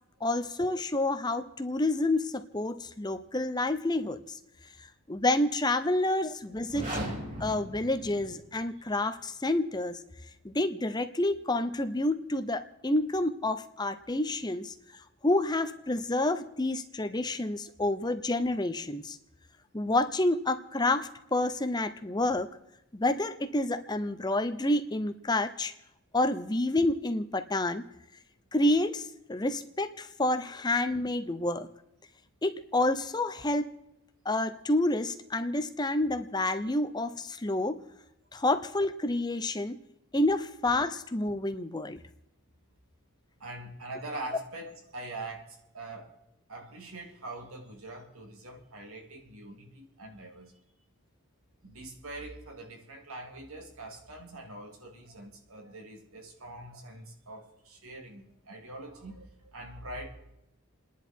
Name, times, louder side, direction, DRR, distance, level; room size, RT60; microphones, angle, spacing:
voice 1, 0.2-4.4 5.1-6.9 7.4-10.0 10.4-14.7 15.2-19.2 19.7-22.5 22.9-25.7 26.1-27.8 28.5-31.7 32.4-33.7 34.2-37.8 38.3-39.8 40.1-42.0, left 2 dB, 20° left, 10 dB, 0.7 m, -29 dB
sound 1, 6.5-8.7, right 1 dB, 35° right, 3.7 m, -37 dB
voice 2, 43.4-46.1 46.5-50.5 51.6-60.1, right 2 dB, 75° right, 2 dB, 3.2 m, -43 dB
29.5 x 10.5 x 4.6 m, 0.86 s
head